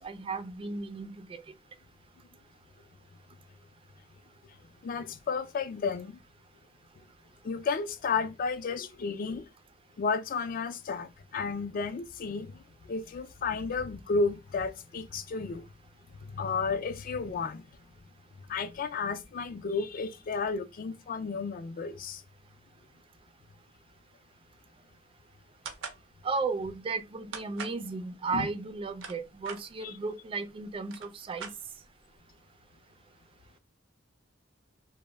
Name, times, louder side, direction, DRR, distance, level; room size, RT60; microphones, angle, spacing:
voice 1, 0.0-1.4 26.2-31.5, right 4 dB, 30° right, 0.3 m, -34 dB
voice 2, 4.8-6.1 7.4-9.5 10.0-12.5 12.9-15.6 16.3-17.6 18.5-22.2 28.3-28.5 29.8-29.9, left 4 dB, 45° left, 0.3 m, -32 dB
sound 1, 25.7-26.0 27.3-27.8 28.7-29.6 30.5-30.6 30.8-32.0, right 6 dB, 85° right, 0.5 m, -41 dB
2.1 x 2.0 x 3.3 m
head